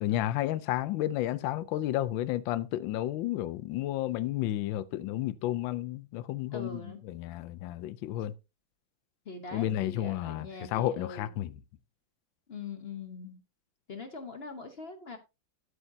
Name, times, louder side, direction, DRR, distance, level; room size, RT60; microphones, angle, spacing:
voice 1, 0.0-8.3 9.5-11.6, left 13 dB, 80° left, 1.3 m, -32 dB
voice 2, 6.5-7.0 9.3-11.3 12.5-13.4 13.9-15.2, left 4 dB, 45° left, 0.8 m, -42 dB
11.0 x 7.9 x 2.7 m
omnidirectional pair, 2.1 m